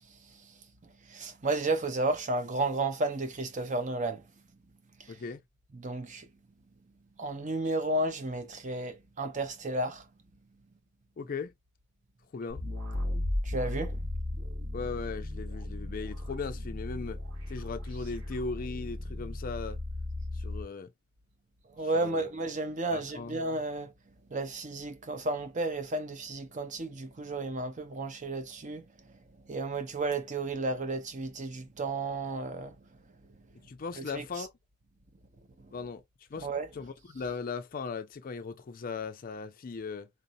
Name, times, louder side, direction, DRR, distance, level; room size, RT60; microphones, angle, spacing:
voice 1, 0.1-4.3 5.0-5.2 5.7-6.3 7.2-10.1 13.4-14.0 21.7-23.9 24.3-32.8 34.0-34.5 35.6-35.7 36.4-36.7, right 2 dB, 35° right, 0.6 m, -33 dB
voice 2, 5.1-5.4 11.2-11.5 12.3-12.6 14.7-17.2 17.5-19.8 20.3-20.9 21.9-22.3 22.9-23.4 33.6-34.5 35.7-36.0 36.3-36.5 36.7-40.1, left 4 dB, 40° left, 0.4 m, -38 dB
sound 1, 12.5-20.7, left 1 dB, 85° right, 2.6 m, -36 dB
3.9 x 2.7 x 2.6 m
head